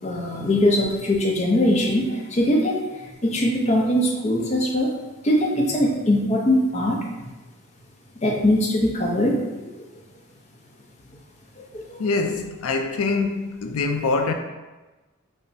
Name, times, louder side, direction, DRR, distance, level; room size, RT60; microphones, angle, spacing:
voice 1, 0.0-4.9 5.2-7.3 8.2-9.7 11.6-12.0, left 1 dB, 30° left, 0.5 m, -22 dB
voice 2, 12.0-14.3, left 3 dB, 85° left, 0.4 m, -24 dB
5.4 x 2.0 x 2.6 m
head